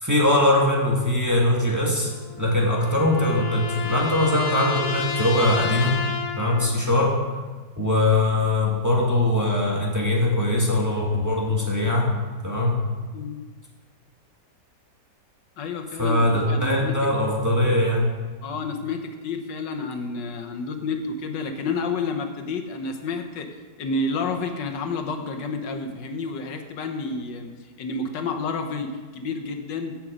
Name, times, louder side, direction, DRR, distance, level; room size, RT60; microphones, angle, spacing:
voice 1, 0.0-2.1 2.4-5.9 6.4-7.2 7.7-12.1 12.4-12.8 16.0-18.1, left 1 dB, 10° right, -3 dB, 1.6 m, -21 dB
sound 1, 2.1-6.9, left 5 dB, 55° left, 1.1 m, -31 dB
voice 2, 15.6-17.1 18.4-27.5 27.8-30.0, left 4 dB, 85° left, 6 dB, 1.7 m, -30 dB
15.5 x 5.9 x 5.0 m, 1.4 s
omnidirectional pair, 1.9 m